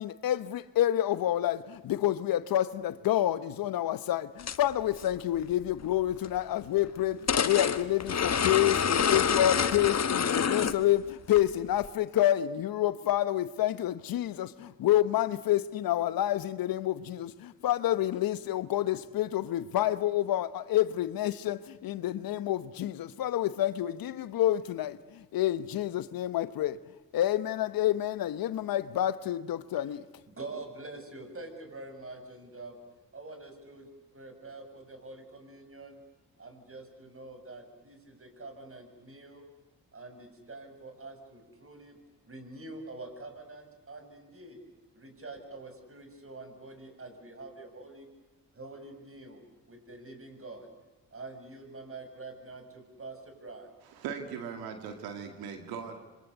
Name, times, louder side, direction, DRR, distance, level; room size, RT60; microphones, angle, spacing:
voice 1, 0.0-26.8 27.1-30.0, left 13 dB, 70° left, 1.1 m, -28 dB
sound 1, 4.4-4.6 4.9-5.1 6.2-6.4 7.3-10.9 11.3-11.4 11.8-11.9, left 7 dB, 45° left, 1.5 m, -27 dB
voice 2, 30.3-32.8 33.1-36.0 36.4-39.5 39.9-42.0 42.3-44.6 44.9-48.1 48.5-49.4 49.7-50.7 51.1-53.7, right 2 dB, 35° right, 7.1 m, -46 dB
voice 3, 53.9-56.0, right 7 dB, 85° right, 2.3 m, -39 dB
27.5 x 24.5 x 8.1 m
hypercardioid pair, 45°, 36 cm